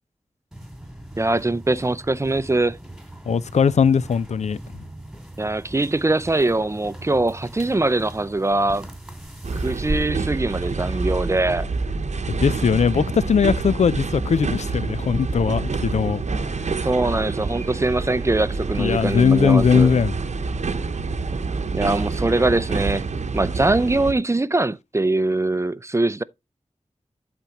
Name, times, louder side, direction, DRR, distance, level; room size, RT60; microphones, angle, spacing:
sound 1, 0.5-11.0, right 1 dB, 5° right, 2.5 m, -38 dB
voice 1, 1.2-2.8 5.4-8.9 9.6-11.7 16.8-19.9 21.7-23.0 23.3-26.2, right 2 dB, 25° right, 0.5 m, -22 dB
voice 2, 3.3-4.8 12.3-16.9 18.8-20.1, left 6 dB, 75° left, 0.4 m, -20 dB
sound 2, 9.4-24.1, right 4 dB, 75° right, 0.9 m, -27 dB
11.5 x 4.4 x 2.9 m
wide cardioid pair, 65°, 12 cm